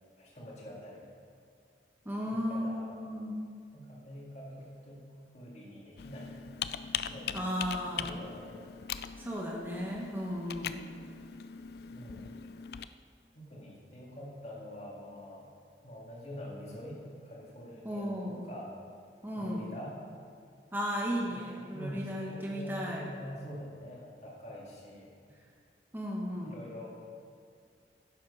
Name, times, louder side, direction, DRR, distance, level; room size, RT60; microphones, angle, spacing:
voice 1, 0.2-1.1 2.3-3.0 3.7-6.5 7.1-7.6 7.9-8.6 11.9-12.3 13.3-15.5 15.8-18.8 19.4-20.0 21.3-21.4 21.7-25.1 26.4-27.2, equal, 40° left, -4 dB, 2.1 m, -45 dB
voice 2, 2.0-3.4 7.3-8.2 9.2-10.8 17.8-18.4 19.2-19.6 20.7-23.1 25.9-26.5, equal, 10° right, -2 dB, 1.1 m, -35 dB
Computer keyboard, 6.0-12.9, left 8 dB, 60° left, 0.3 m, -41 dB
10.5 x 7.6 x 5.4 m, 2.3 s
head